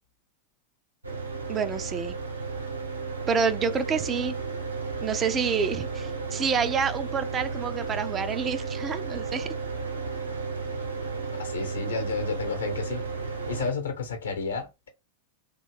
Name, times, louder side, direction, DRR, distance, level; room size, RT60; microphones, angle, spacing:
Mechanical fan, 1.0-13.7, right 4 dB, 80° right, 0.7 m, -33 dB
voice 1, 1.5-2.1 3.3-4.4 5.0-9.5, right 6 dB, 25° right, 0.3 m, -28 dB
voice 2, 11.4-13.0 13.5-14.9, left 4 dB, 70° left, 0.8 m, -31 dB
2.6 x 2.2 x 3.2 m
figure-of-eight pair, 90°, 0 cm